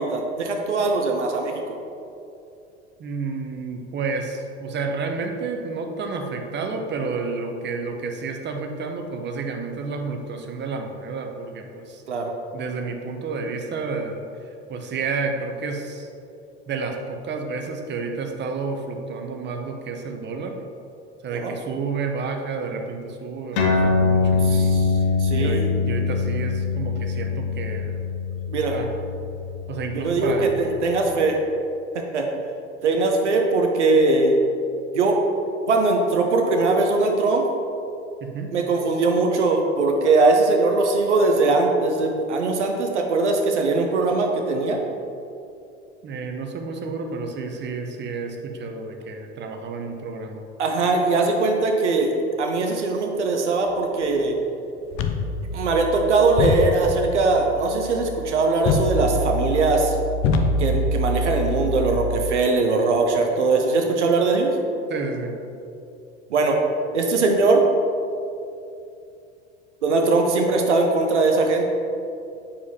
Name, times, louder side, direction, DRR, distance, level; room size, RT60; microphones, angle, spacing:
voice 1, 0.0-1.8 12.1-12.3 21.3-21.5 24.4-24.9 25.2-25.7 28.5-28.8 29.9-31.4 31.9-32.3 32.8-34.4 34.9-35.2 35.7-37.5 38.5-44.8 50.6-52.1 52.4-54.4 55.5-60.0 60.6-64.6 66.3-66.6 66.9-67.6 69.8-71.7, right 3 dB, 90° right, 2 dB, 0.7 m, -21 dB
voice 2, 3.0-12.0 12.5-14.2 14.7-16.1 16.7-20.6 21.2-24.7 25.3-28.0 28.5-28.9 29.7-30.5 38.2-38.5 46.0-50.4 64.9-65.4, right 4 dB, 30° right, 4 dB, 0.8 m, -30 dB
sound 1, 23.5-30.5, left 4 dB, 70° left, 1.1 m, -23 dB
sound 2, 54.9-62.3, left 2 dB, 40° left, 0.6 m, -25 dB
8.5 x 4.7 x 2.8 m, 2.6 s
hypercardioid pair, 80°, 34 cm